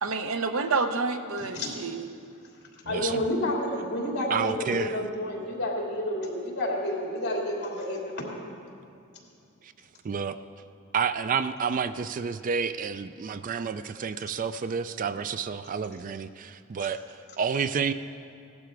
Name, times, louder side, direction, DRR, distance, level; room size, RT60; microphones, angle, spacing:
voice 1, 0.0-2.1, right 4 dB, 75° right, 7 dB, 0.8 m, -28 dB
voice 2, 1.4-1.7 2.8-8.5, left 1 dB, 55° left, -1 dB, 2.9 m, -30 dB
voice 3, 2.9-3.2 4.3-5.0 9.6-9.7 10.0-10.4 10.9-17.0 17.4-17.9, right 6 dB, 40° right, 12 dB, 0.3 m, -29 dB
17.0 x 12.0 x 4.7 m, 2.6 s
head